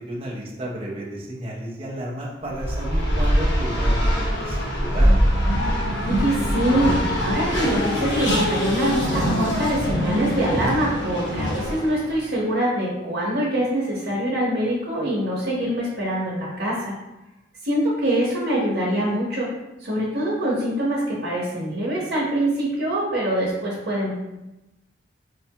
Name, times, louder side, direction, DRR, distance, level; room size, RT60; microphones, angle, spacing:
voice 1, 0.0-5.1, right 1 dB, 30° right, -4 dB, 0.7 m, -33 dB
Race car auto racing, 2.5-12.2, equal, 75° left, 1.1 m, -23 dB
voice 2, 6.0-16.9 17.6-19.5 19.8-24.1, right 1 dB, 55° right, -7 dB, 0.9 m, -24 dB
5.1 x 2.3 x 2.8 m, 0.97 s
head